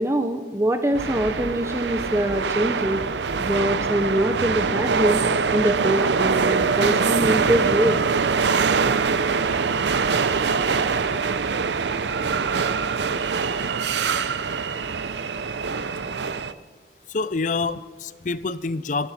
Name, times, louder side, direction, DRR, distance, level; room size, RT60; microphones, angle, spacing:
voice 1, 0.0-3.0 3.4-5.2 5.5-8.0, right 1 dB, 15° right, 7 dB, 0.7 m, -23 dB
sound 1, 0.9-16.5, right 5 dB, 75° right, 0.7 m, -23 dB
voice 2, 17.1-19.1, left 3 dB, 45° left, 16 dB, 0.5 m, -27 dB
25.0 x 13.0 x 4.3 m, 1.4 s
head